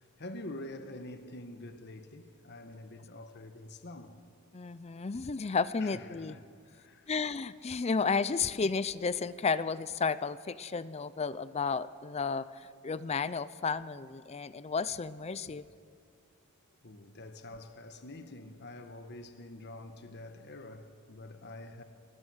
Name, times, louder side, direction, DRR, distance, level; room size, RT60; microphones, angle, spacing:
voice 1, 0.2-4.2 5.8-7.1 16.8-21.8, left 1 dB, 50° left, 1.4 m, -46 dB
voice 2, 4.5-6.4 7.1-15.6, left 5 dB, 30° left, 0.5 m, -32 dB
27.5 x 20.0 x 6.4 m
head